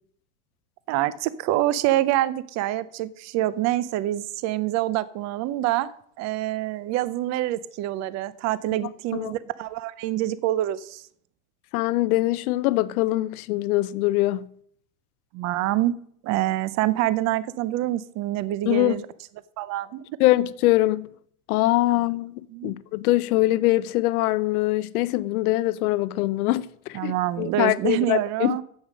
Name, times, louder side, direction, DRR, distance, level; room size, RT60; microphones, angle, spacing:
voice 1, 0.9-5.9 6.2-11.0 15.3-15.9 16.2-19.1 19.6-20.1 21.9-22.0 22.5-22.7 26.9-28.6, right 14 dB, 35° right, 0.6 m, -26 dB
voice 2, 11.7-14.5 18.7-19.0 20.2-21.1 21.5-28.6, left 17 dB, 70° left, 0.7 m, -23 dB
8.6 x 7.4 x 6.1 m
supercardioid pair, 125°, 45 cm